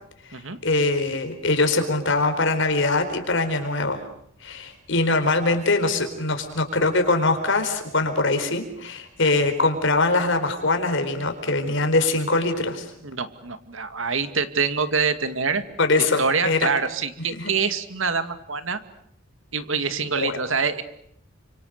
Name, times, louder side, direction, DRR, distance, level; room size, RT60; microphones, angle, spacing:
voice 1, 0.3-4.0 4.4-12.9 15.8-16.7 17.4-17.5 20.2-20.4, left 2 dB, 65° left, 7 dB, 4.5 m, -22 dB
voice 2, 13.0-15.6 16.2-18.8 19.5-20.8, right 5 dB, 75° right, 10 dB, 2.3 m, -25 dB
30.0 x 26.0 x 6.7 m, 0.70 s
head